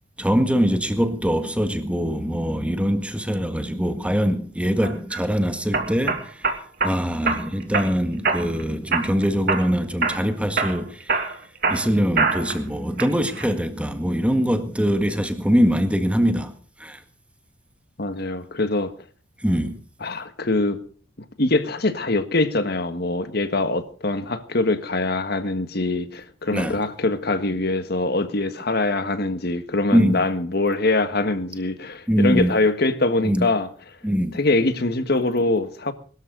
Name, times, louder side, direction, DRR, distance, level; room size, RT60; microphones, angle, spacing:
voice 1, 0.2-6.4 6.8-11.2 11.7-16.5 16.8-17.0 19.4-19.8 26.5-26.7 29.9-30.2 32.1-32.5 33.2-33.5 34.0-34.4, equal, 5° right, 1.7 m, -22 dB
sound 1, 4.8-5.2 5.7-6.9 7.3-7.9 8.2-8.6 8.9-9.7 10.0-10.3 10.6-12.6 13.0-13.5, right 4 dB, 55° right, 2.5 m, -24 dB
voice 2, 18.0-18.9 20.0-20.8 21.4-33.7 34.3-35.9, left 2 dB, 55° left, 1.6 m, -23 dB
22.0 x 13.0 x 3.9 m
head